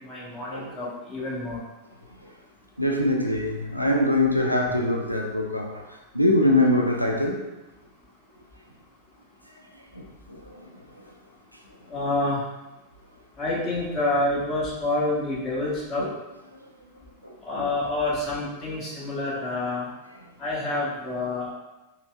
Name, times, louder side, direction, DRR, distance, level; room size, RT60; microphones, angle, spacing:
voice 1, 0.0-1.6 11.9-12.4 13.4-16.1 17.4-19.9 20.4-21.5, left 2 dB, 30° left, 1.2 m, -28 dB
voice 2, 2.8-5.9 6.1-7.4 9.9-11.1 16.0-16.2 17.2-17.7, left 1 dB, 90° left, 0.5 m, -24 dB
5.8 x 2.1 x 2.4 m
figure-of-eight pair, 90°, 0 cm